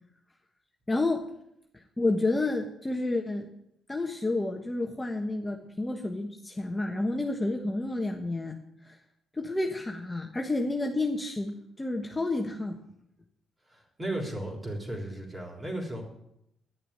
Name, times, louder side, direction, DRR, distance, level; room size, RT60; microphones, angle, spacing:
voice 1, 0.9-1.2 1.7-3.4 3.9-8.6 8.8-9.0 9.3-12.8, left 2 dB, 15° left, 2 dB, 1.2 m, -30 dB
voice 2, 13.7-16.0, right 1 dB, 25° right, 1 dB, 3.6 m, -35 dB
11.0 x 6.6 x 8.8 m, 0.79 s
cardioid pair, 90°, 0 cm